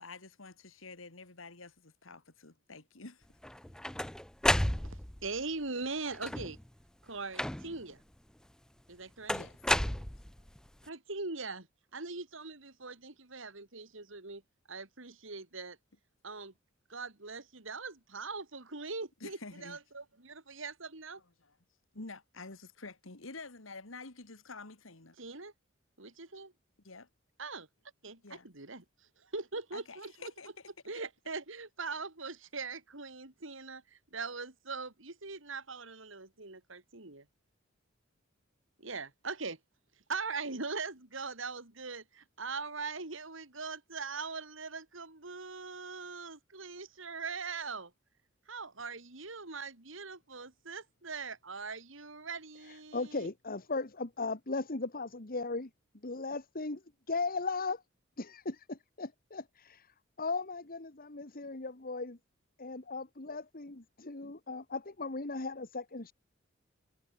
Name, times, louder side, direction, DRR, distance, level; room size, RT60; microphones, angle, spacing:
voice 1, 0.0-3.3 9.3-9.6 19.2-19.8 21.9-25.1 26.8-27.1 28.2-28.5 29.7-30.5, left 3 dB, 80° left, 2.7 m, -48 dB
sound 1, 3.4-5.3 6.1-6.7 7.4-7.9 9.3-10.6, left 1 dB, 5° left, 0.4 m, -32 dB
voice 2, 4.8-6.6 7.0-8.0 8.9-9.3 10.8-11.7 11.9-14.4 14.7-15.8 16.2-16.5 16.9-21.2 25.2-25.5 26.0-26.5 27.4-27.7 28.0-30.3 30.9-37.3 38.8-39.6 40.1-47.9 48.5-53.3, right 4 dB, 70° right, 3.2 m, -41 dB
voice 3, 52.9-55.7 56.0-56.8 57.1-57.8 58.2-59.8 60.2-62.2 62.6-66.1, left 3 dB, 45° left, 1.7 m, -37 dB
head